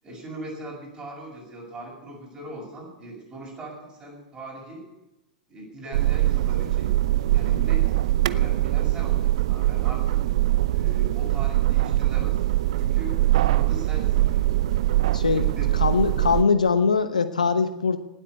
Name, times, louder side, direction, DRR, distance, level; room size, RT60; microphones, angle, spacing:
voice 1, 0.0-4.9 5.5-7.8 8.2-10.2 10.7-12.4 12.8-14.5 15.2-15.7, right 1 dB, 15° right, -4 dB, 7.0 m, -40 dB
sound 1, 5.9-16.4, right 15 dB, 55° right, 0.6 m, -22 dB
voice 2, 15.1-15.5 15.7-18.0, left 5 dB, 75° left, 11 dB, 0.9 m, -22 dB
18.5 x 8.4 x 8.3 m, 0.96 s
figure-of-eight pair, 90°, 4 cm